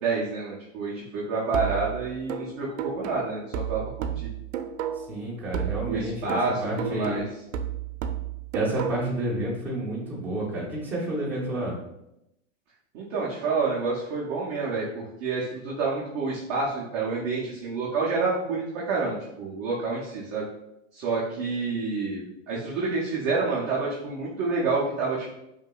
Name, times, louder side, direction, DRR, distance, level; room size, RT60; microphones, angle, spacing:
voice 1, 0.0-4.3 5.9-7.2 12.9-20.5 20.9-25.3, right 4 dB, 25° right, -6 dB, 0.4 m, -28 dB
sound 1, 1.5-5.2 5.5-9.2, right 8 dB, 75° right, 0.5 m, -32 dB
voice 2, 4.9-7.2 8.5-11.8, right 1 dB, 5° right, -7 dB, 0.9 m, -30 dB
5.1 x 2.9 x 2.3 m, 0.85 s
supercardioid pair, 160°, 39 cm